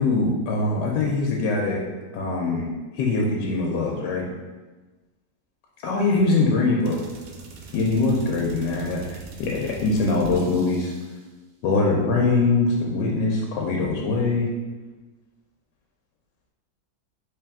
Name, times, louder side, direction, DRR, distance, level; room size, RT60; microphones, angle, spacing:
voice 1, 0.0-1.8 2.1-2.7 3.0-4.3 5.8-7.0 7.7-10.9 11.6-14.5, left 3 dB, 85° left, -1 dB, 1.2 m, -22 dB
sound 1, 6.8-11.3, right 4 dB, 85° right, 0.6 m, -42 dB
3.3 x 3.2 x 3.5 m, 1.2 s
omnidirectional pair, 1.9 m